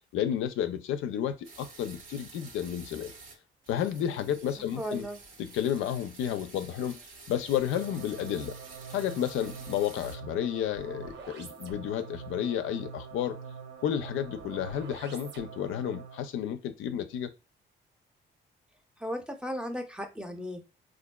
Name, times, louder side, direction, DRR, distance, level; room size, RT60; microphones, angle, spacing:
voice 1, 0.1-3.1 3.7-5.0 5.4-7.0 7.3-8.6 8.9-13.4 13.8-17.3, left 10 dB, 85° left, 0.4 m, -31 dB
sound 1, 1.4-3.3 3.6-10.2, right 4 dB, 80° right, 1.2 m, -50 dB
voice 2, 4.8-5.2 19.0-20.6, equal, 5° right, 0.6 m, -35 dB
sound 2, 7.5-16.3, right 6 dB, 65° right, 0.7 m, -44 dB
3.7 x 2.5 x 2.2 m
cardioid pair, 90°, 20 cm